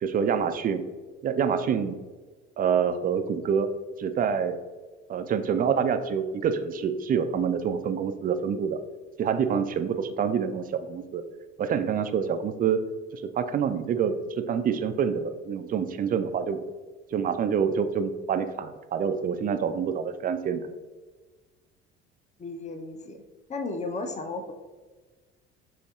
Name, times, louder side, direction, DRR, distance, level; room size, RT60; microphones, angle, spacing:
voice 1, 0.0-0.8 1.2-2.0 2.6-3.7 4.0-4.6 5.1-8.8 9.2-11.2 11.6-12.8 13.1-16.6 17.1-20.7, right 7 dB, 30° right, 9 dB, 0.4 m, -27 dB
voice 2, 22.4-23.2 23.5-24.5, left 3 dB, 20° left, 6 dB, 0.6 m, -34 dB
7.2 x 2.7 x 2.3 m, 1.3 s
hypercardioid pair, 60°, 32 cm